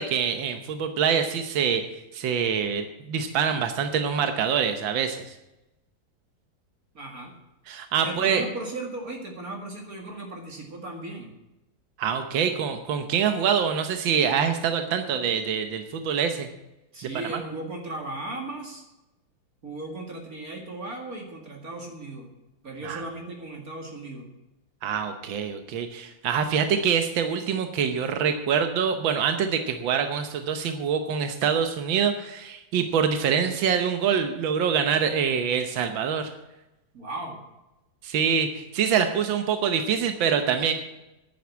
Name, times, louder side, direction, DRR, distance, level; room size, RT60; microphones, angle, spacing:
voice 1, 0.0-1.8 2.1-5.4 7.7-8.4 12.0-16.5 17.3-17.4 22.8-23.0 24.8-36.3 38.0-40.7, right 7 dB, 85° right, 7 dB, 1.7 m, -25 dB
voice 2, 6.9-7.3 8.0-11.3 16.9-18.8 19.6-22.3 22.6-24.3 36.9-37.4, right 2 dB, 50° right, 1 dB, 2.6 m, -36 dB
10.5 x 9.6 x 8.4 m, 0.96 s
omnidirectional pair, 2.0 m